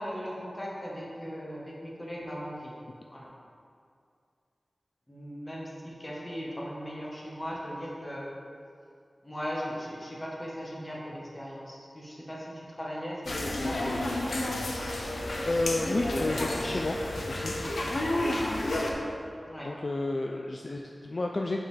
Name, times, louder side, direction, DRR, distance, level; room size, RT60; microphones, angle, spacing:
voice 1, 0.0-2.7 3.1-3.3 5.1-8.3 9.2-13.8 17.5-17.7 19.4-19.7, equal, 20° left, -5 dB, 1.4 m, -38 dB
sound 1, 13.3-18.9, left 1 dB, 85° left, 0.7 m, -31 dB
voice 2, 15.5-17.0 17.3-17.5 19.6-21.6, left 2 dB, 50° left, 1 dB, 0.3 m, -31 dB
6.7 x 5.8 x 3.4 m, 2.4 s
wide cardioid pair, 90°, 0 cm